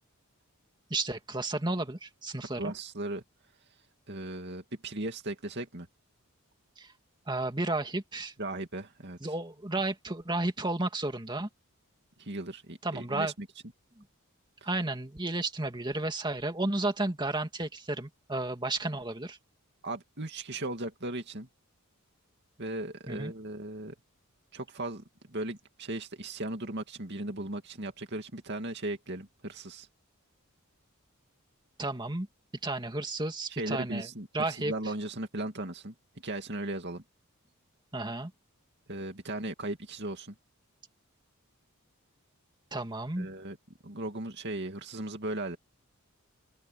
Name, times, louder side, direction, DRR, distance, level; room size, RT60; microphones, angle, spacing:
voice 1, 0.9-2.7 6.8-6.9 7.3-8.3 9.2-11.5 12.8-13.3 14.6-19.4 23.1-23.3 31.8-32.3 32.6-34.1 34.3-34.7 37.9-38.3 42.7-43.3, right 2 dB, 20° right, 2.3 m, -32 dB
voice 2, 2.5-3.2 4.1-5.9 8.4-9.2 12.2-13.5 14.6-14.7 19.8-21.5 22.6-23.9 24.5-29.9 33.5-35.9 36.2-37.0 38.9-40.3 43.2-43.6 43.8-45.6, right 2 dB, 50° right, 2.6 m, -37 dB
open air
head